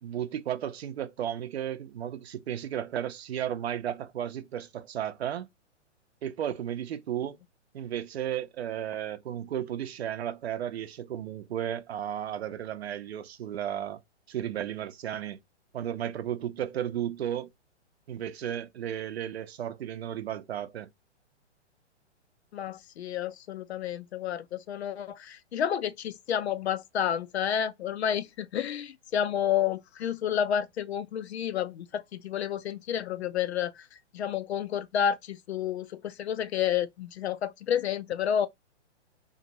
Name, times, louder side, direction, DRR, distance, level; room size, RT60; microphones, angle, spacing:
voice 1, 0.0-5.5 6.2-7.4 7.7-14.0 14.3-15.4 15.7-17.5 18.1-20.9, right 10 dB, 60° right, 0.6 m, -34 dB
voice 2, 22.5-38.5, left 9 dB, 65° left, 0.5 m, -30 dB
2.6 x 2.5 x 2.9 m
figure-of-eight pair, 120°, 36 cm